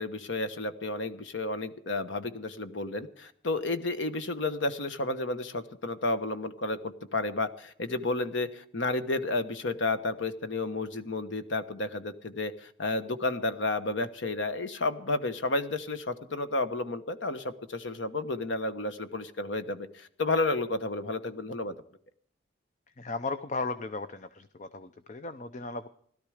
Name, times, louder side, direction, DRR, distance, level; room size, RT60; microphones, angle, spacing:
voice 1, 0.0-21.7, left 2 dB, 80° left, 11 dB, 1.2 m, -31 dB
voice 2, 23.0-25.9, left 3 dB, 40° left, 11 dB, 0.6 m, -36 dB
17.0 x 12.5 x 5.0 m, 0.63 s
head